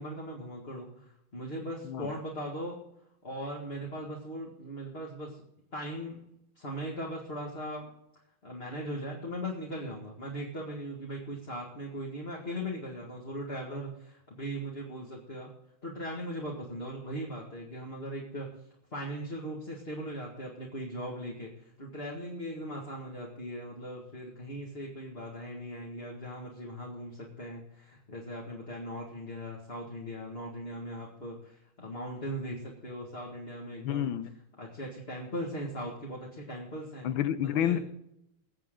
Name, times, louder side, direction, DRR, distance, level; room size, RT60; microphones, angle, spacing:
voice 1, 0.0-2.8 3.2-5.4 5.7-6.2 6.6-7.9 8.4-15.5 15.8-18.5 18.9-34.2 34.6-37.1 37.4-37.8, equal, 30° left, -2 dB, 2.0 m, -39 dB
voice 2, 33.8-34.3 37.0-37.8, left 10 dB, 75° left, 13 dB, 1.6 m, -29 dB
21.5 x 7.7 x 3.8 m, 0.82 s
omnidirectional pair, 2.3 m